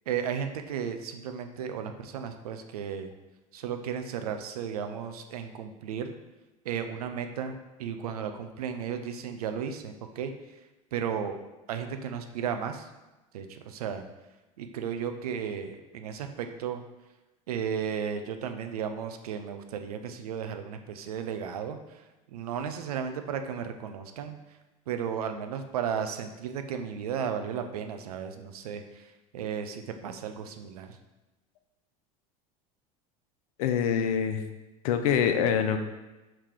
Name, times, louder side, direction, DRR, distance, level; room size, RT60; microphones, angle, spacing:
voice 1, 0.1-3.1 3.5-6.1 6.7-10.3 10.9-11.4 11.7-12.9 13.3-14.0 14.6-16.8 17.5-21.8 22.3-24.4 24.9-29.0 29.3-30.9, right 7 dB, 85° right, 7 dB, 0.5 m, -34 dB
voice 2, 33.6-34.4 34.8-35.8, left 8 dB, 75° left, 7 dB, 0.5 m, -25 dB
4.8 x 2.9 x 3.7 m, 1.1 s
hypercardioid pair, 90°, 19 cm